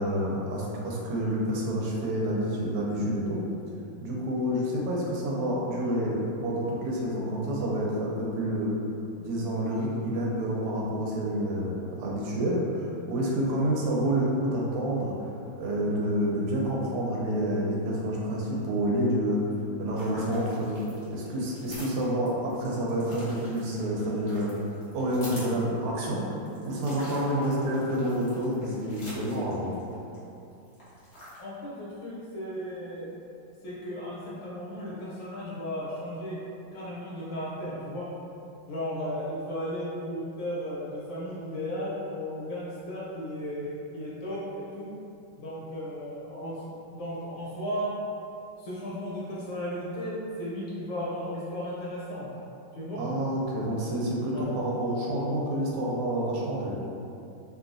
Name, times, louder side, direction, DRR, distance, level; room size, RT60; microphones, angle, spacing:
voice 1, 0.0-3.5 4.0-8.7 9.2-15.3 15.6-19.4 19.8-20.8 21.1-24.5 24.9-26.2 26.6-29.8 53.0-56.8, equal, 85° right, -3 dB, 1.5 m, -28 dB
sound 1, 20.0-30.2 30.5-31.4, left 1 dB, 90° left, 0.5 m, -46 dB
voice 2, 31.4-33.1 33.6-36.4 36.7-38.1 38.7-44.9 45.4-46.6 46.9-47.9 48.6-52.3 52.7-53.0 54.3-54.5, equal, 70° left, -8 dB, 1.3 m, -35 dB
3.5 x 2.3 x 2.5 m, 2.7 s
omnidirectional pair, 2.4 m